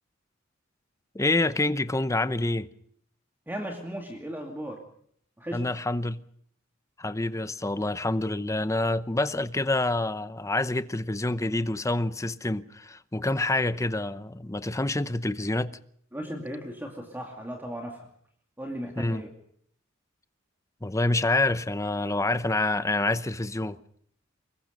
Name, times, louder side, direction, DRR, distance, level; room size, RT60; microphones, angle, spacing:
voice 1, 1.1-2.7 5.5-6.2 7.0-15.8 19.0-19.2 20.8-23.8, left 2 dB, 15° left, 0.8 m, -27 dB
voice 2, 3.5-4.8 5.4-5.7 16.1-18.1 18.6-19.3, equal, 10° right, 2.5 m, -36 dB
25.0 x 22.0 x 5.3 m
head